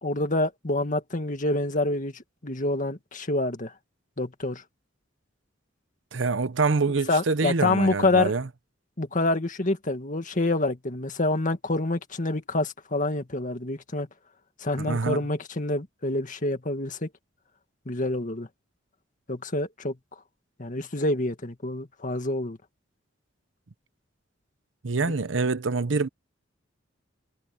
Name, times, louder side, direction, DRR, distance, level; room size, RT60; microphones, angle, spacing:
voice 1, 0.0-3.7 4.2-4.6 7.1-8.3 9.0-14.1 14.6-17.1 17.9-18.5 19.3-20.0 20.6-22.6, left 2 dB, 45° left, 2.0 m, -27 dB
voice 2, 6.1-8.5 14.8-15.2 24.8-26.1, right 4 dB, 75° right, 0.8 m, -25 dB
head